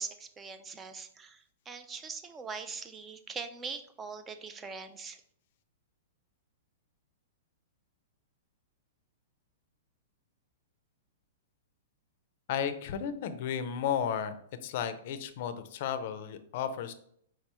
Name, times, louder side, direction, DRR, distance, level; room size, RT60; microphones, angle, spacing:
voice 1, 0.0-5.2, right 5 dB, 15° right, 9 dB, 0.3 m, -42 dB
voice 2, 12.5-14.4 14.6-16.9, left 8 dB, 45° left, 10 dB, 0.4 m, -33 dB
4.7 x 3.0 x 3.3 m, 0.66 s
hypercardioid pair, 160°, 0 cm